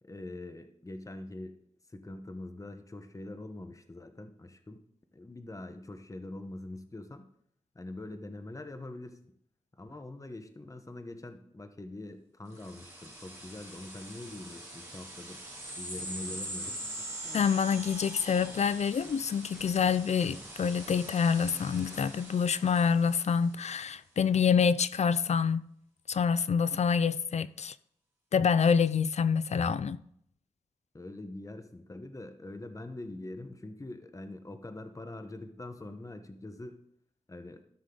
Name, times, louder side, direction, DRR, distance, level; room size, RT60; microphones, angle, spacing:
voice 1, 0.0-1.6 1.9-4.8 5.1-7.3 7.7-9.2 9.7-15.4 15.7-16.8 30.9-36.8 37.3-37.6, left 2 dB, 25° left, 1.1 m, -44 dB
sound 1, 12.5-23.6, right 1 dB, 20° right, 4.4 m, -43 dB
sound 2, 15.7-17.4 17.8-18.7 19.0-19.2 19.5-22.1, equal, ahead, 1.1 m, -53 dB
voice 2, 17.3-25.6 26.1-27.7 28.3-30.0, left 6 dB, 70° left, 0.4 m, -27 dB
13.5 x 6.6 x 3.9 m
cardioid pair, 55°, 12 cm